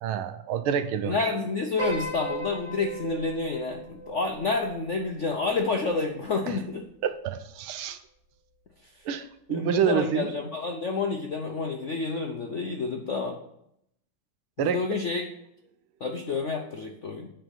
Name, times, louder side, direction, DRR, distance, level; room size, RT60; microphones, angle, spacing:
voice 1, 0.0-1.1 6.5-6.6 7.0-8.0 9.0-10.3 14.6-14.8, right 9 dB, 75° right, 11 dB, 1.6 m, -28 dB
voice 2, 1.0-6.9 9.5-13.4 14.6-15.3 16.0-17.3, left 4 dB, 65° left, 3 dB, 0.7 m, -29 dB
Piano, 1.8-6.2, right 2 dB, 30° left, 4.9 m, -37 dB
9.0 x 5.8 x 7.1 m, 0.75 s
omnidirectional pair, 2.4 m